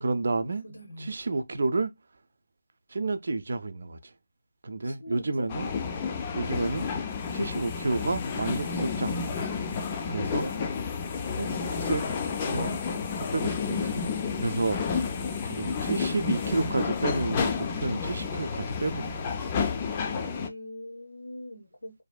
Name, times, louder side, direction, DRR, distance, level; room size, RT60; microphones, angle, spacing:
voice 1, 0.0-0.6 1.0-1.9 2.9-4.0 4.6-5.7 6.3-6.9 7.3-9.5 10.1-10.5 11.4-12.1 12.4-12.8 13.3-14.1 14.4-15.1 15.4-19.3, right 3 dB, 60° right, 0.4 m, -30 dB
voice 2, 0.6-1.2 4.8-5.5 10.3-10.5 20.3-22.0, left 1 dB, 80° left, 0.7 m, -41 dB
Train going - interior, 5.5-20.5, left 5 dB, 25° left, 0.3 m, -31 dB
2.6 x 2.3 x 2.2 m
figure-of-eight pair, 160°, 0 cm